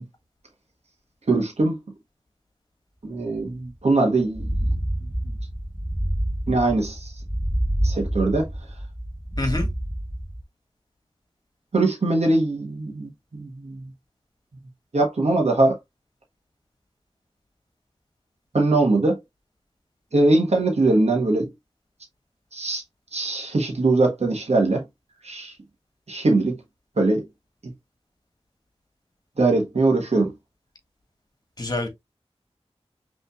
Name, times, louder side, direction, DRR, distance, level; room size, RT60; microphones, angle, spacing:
voice 1, 1.3-1.8 3.0-4.7 6.5-7.1 7.8-8.5 11.7-13.8 14.9-15.8 18.5-19.2 20.1-21.5 22.5-22.8 23.1-24.8 25.2-25.5 26.1-26.6 27.0-27.2 29.4-30.3, right 2 dB, 80° right, 1.4 m, -21 dB
sound 1, 3.4-3.5 3.7-3.8 4.2-10.4, right 1 dB, ahead, 0.6 m, -27 dB
voice 2, 9.4-9.7 31.6-31.9, left 2 dB, 40° left, 1.8 m, -26 dB
5.5 x 3.5 x 2.4 m
wide cardioid pair, 60°, 11 cm